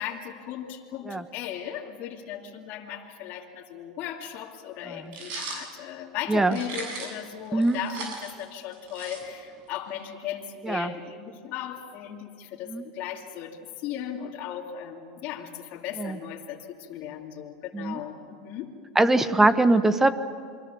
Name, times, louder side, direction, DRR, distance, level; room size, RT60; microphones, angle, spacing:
voice 1, 0.0-18.7, left 10 dB, 55° left, -1 dB, 2.7 m, -37 dB
sound 1, 5.1-5.6 6.5-7.2 7.6-9.6, right 4 dB, 55° right, 7.6 m, -38 dB
voice 2, 18.9-20.1, right 2 dB, 10° right, 11 dB, 1.4 m, -22 dB
28.5 x 23.5 x 7.1 m, 2.2 s
hypercardioid pair, 105°, 4 cm